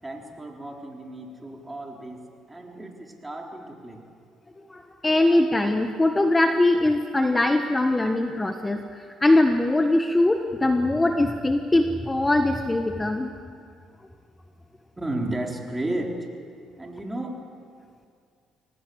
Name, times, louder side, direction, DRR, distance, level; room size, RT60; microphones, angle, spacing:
voice 1, 0.0-4.0 15.0-16.3 16.8-17.4, right 1 dB, 15° right, 1 dB, 4.2 m, -33 dB
voice 2, 4.7-13.3, left 2 dB, 15° left, 6 dB, 1.4 m, -22 dB
23.0 x 19.0 x 8.1 m, 2.2 s
supercardioid pair, 70°, 0 cm